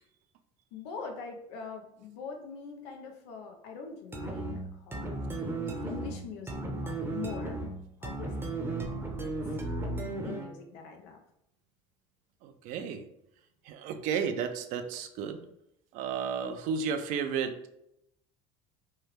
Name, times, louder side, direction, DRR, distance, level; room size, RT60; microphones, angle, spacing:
voice 1, 0.7-4.5 4.9-7.6 8.0-8.7 9.2-9.6 10.0-11.2, left 6 dB, 90° left, 4 dB, 0.6 m, -43 dB
sound 1, 4.1-10.6, right 2 dB, 15° right, 0.7 m, -35 dB
voice 2, 12.4-13.0 13.7-15.4 15.9-17.5, right 6 dB, 65° right, 8 dB, 0.5 m, -32 dB
3.2 x 2.2 x 3.2 m, 0.78 s
supercardioid pair, 105°, 14 cm